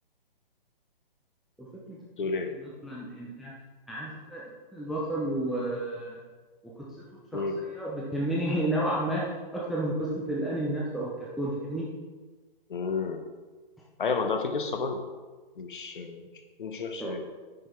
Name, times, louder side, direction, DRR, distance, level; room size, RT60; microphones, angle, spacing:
voice 1, 1.6-2.0 2.6-3.5 3.9-4.4 4.7-6.2 7.3-9.2 9.5-11.9 17.0-17.1, right 1 dB, ahead, -6 dB, 0.4 m, -31 dB
voice 2, 2.2-2.5 7.3-7.6 12.7-13.2 14.0-15.0 15.6-16.3 16.6-17.2, left 4 dB, 60° left, 6 dB, 1.2 m, -31 dB
9.4 x 6.2 x 4.6 m, 1.3 s
figure-of-eight pair, 130°, 29 cm